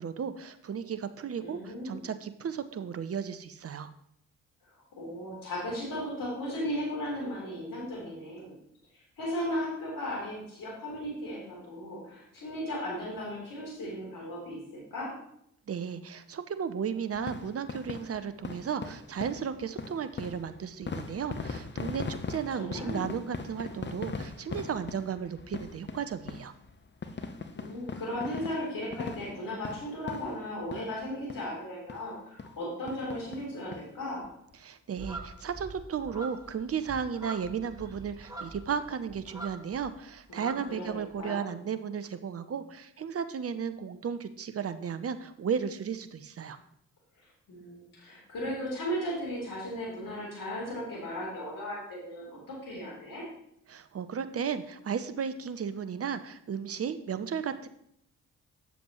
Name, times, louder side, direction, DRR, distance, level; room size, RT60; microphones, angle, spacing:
voice 1, 0.0-3.9 15.7-26.5 34.6-46.6 53.7-57.7, right 7 dB, 40° right, 11 dB, 0.8 m, -34 dB
voice 2, 1.4-2.0 4.9-8.6 9.2-15.1 22.5-23.0 27.6-34.2 40.3-41.5 47.5-53.2, equal, 60° left, -3 dB, 3.5 m, -36 dB
sound 1, 17.1-31.0 31.3-31.5 31.9-32.0 32.4-32.6 32.9-33.8 34.2-34.3 34.5-34.6, left 4 dB, 30° left, 0.9 m, -40 dB
sound 2, 35.0-39.9 40.2-41.2, right 2 dB, 10° right, 2.1 m, -44 dB
9.3 x 7.1 x 3.0 m, 0.74 s
hypercardioid pair, 45°, 37 cm